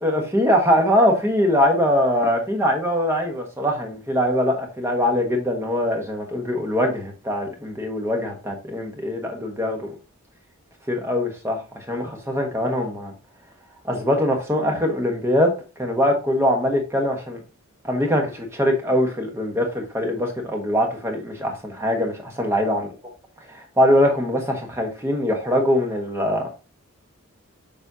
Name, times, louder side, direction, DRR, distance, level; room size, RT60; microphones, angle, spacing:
voice 1, 0.0-9.9 10.9-13.1 13.8-17.4 17.8-22.9 23.5-26.5, equal, 10° right, 1.2 m, -22 dB
6.9 x 5.2 x 2.7 m
head